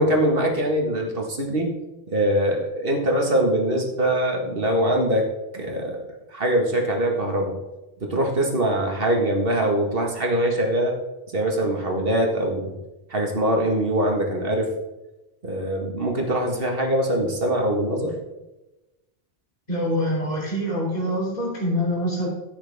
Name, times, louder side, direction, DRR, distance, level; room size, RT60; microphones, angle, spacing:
voice 1, 0.0-1.7 2.1-5.3 5.5-6.0 6.3-7.6 8.0-11.0 11.3-12.7 13.1-14.7 15.4-18.2, right 1 dB, 60° right, 1 dB, 1.9 m, -23 dB
voice 2, 19.7-22.3, equal, 40° left, -4 dB, 3.3 m, -25 dB
12.5 x 8.5 x 3.5 m, 1.0 s
omnidirectional pair, 1.1 m